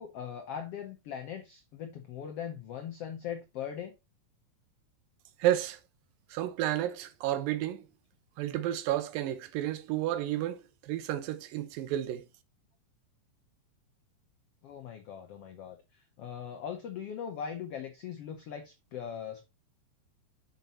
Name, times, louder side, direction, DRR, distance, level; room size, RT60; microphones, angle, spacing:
voice 1, 0.0-3.9 14.6-19.5, left 8 dB, 80° left, 1.3 m, -40 dB
voice 2, 5.4-5.8 6.3-7.9 8.4-12.3, right 13 dB, 85° right, 2.5 m, -31 dB
7.0 x 5.3 x 4.1 m
omnidirectional pair, 4.0 m